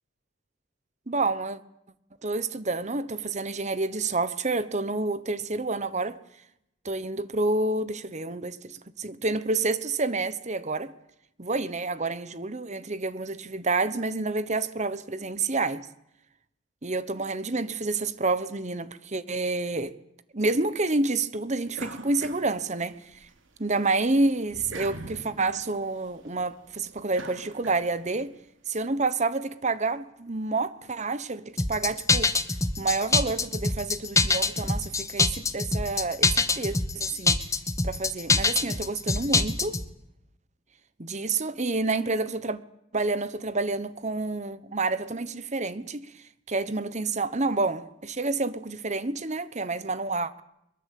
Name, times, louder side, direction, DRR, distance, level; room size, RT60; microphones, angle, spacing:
voice 1, 1.1-1.6 2.2-6.2 6.8-10.9 11.4-15.9 16.8-20.0 20.3-23.3 23.6-28.3 28.7-32.3 32.8-37.4 37.8-39.8 41.0-42.6 42.9-50.4, right 3 dB, 35° right, 1.1 m, -29 dB
sound 1, 21.7-23.3 23.7-28.3, right 2 dB, 65° right, 3.7 m, -43 dB
sound 2, 31.6-39.9, left 3 dB, 15° left, 1.3 m, -24 dB
23.0 x 22.5 x 8.5 m
head